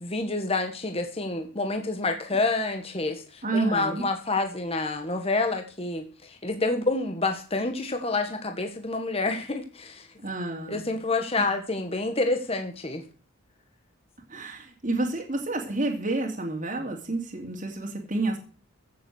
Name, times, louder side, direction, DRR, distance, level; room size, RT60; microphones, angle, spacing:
voice 1, 0.0-10.1 10.7-13.0, left 3 dB, 25° left, 5 dB, 1.6 m, -28 dB
voice 2, 3.4-4.0 10.2-10.8 11.4-11.5 14.3-18.4, right 2 dB, 35° right, 0 dB, 2.6 m, -29 dB
15.5 x 7.6 x 6.5 m, 0.39 s
head